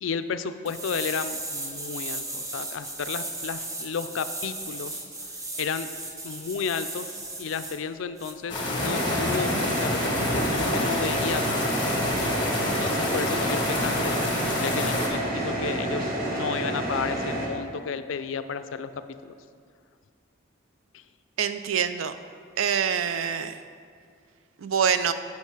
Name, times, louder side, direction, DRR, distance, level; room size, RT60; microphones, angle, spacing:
voice 1, 0.0-5.0 5.6-5.9 6.2-11.7 12.6-18.9 19.2-19.3 20.9-21.0, left 6 dB, 75° left, 11 dB, 0.4 m, -33 dB
sound 1, 0.7-7.8 8.2-8.3, right 2 dB, 15° right, 0.7 m, -36 dB
sound 2, 8.5-15.1, left 2 dB, 25° left, 1.5 m, -28 dB
sound 3, 8.8-17.5, right 1 dB, 50° right, 1.4 m, -29 dB
voice 2, 21.4-22.1 22.6-23.6 24.6-25.1, right 7 dB, 80° right, 11 dB, 0.4 m, -25 dB
8.4 x 6.4 x 4.9 m, 2.2 s
head